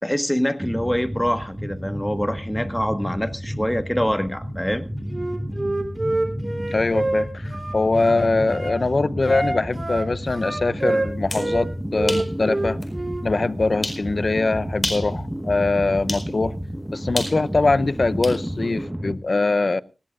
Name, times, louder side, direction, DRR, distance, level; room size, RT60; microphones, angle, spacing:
voice 1, 0.0-4.8, equal, 5° left, 1.5 m, -25 dB
sound 1, 0.6-19.2, equal, 10° right, 1.4 m, -31 dB
Wind instrument woodwind instrument, 5.1-8.8 9.2-11.7 11.9-13.3, right 2 dB, 30° right, 3.5 m, -27 dB
voice 2, 6.7-12.8 13.2-16.6 16.9-19.8, left 3 dB, 55° left, 0.7 m, -22 dB
sound 2, 11.1-11.5 12.1-12.3 12.8-12.9 13.8-14.0 14.7-15.1 16.1-16.3 17.2-18.4, left 1 dB, 30° left, 4.6 m, -29 dB
19.5 x 16.0 x 2.5 m
cardioid pair, 50°, 0 cm